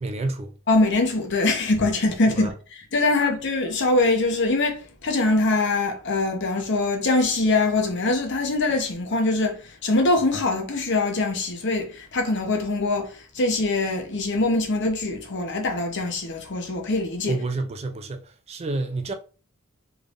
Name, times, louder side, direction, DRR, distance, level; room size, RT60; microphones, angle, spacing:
voice 1, 0.0-0.5 2.3-2.5 17.3-19.1, right 2 dB, 30° right, 0.3 m, -29 dB
voice 2, 0.7-17.4, left 2 dB, 55° left, 0.8 m, -23 dB
3.5 x 3.4 x 2.5 m
head